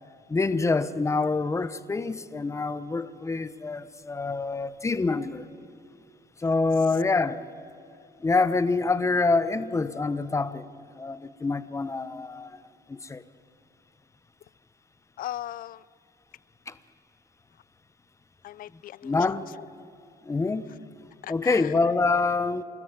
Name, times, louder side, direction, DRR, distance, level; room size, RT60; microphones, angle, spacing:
voice 1, 0.3-5.5 6.4-7.4 8.2-10.6 11.0-12.6 12.9-13.2 16.7-16.8 19.0-19.5 20.3-20.7 21.3-22.6, left 3 dB, 15° left, 0.9 m, -26 dB
voice 2, 15.2-15.8 18.4-19.2 19.6-19.7 21.2-21.7, left 13 dB, 55° left, 0.4 m, -38 dB
28.5 x 13.5 x 9.0 m
cardioid pair, 110°, 17 cm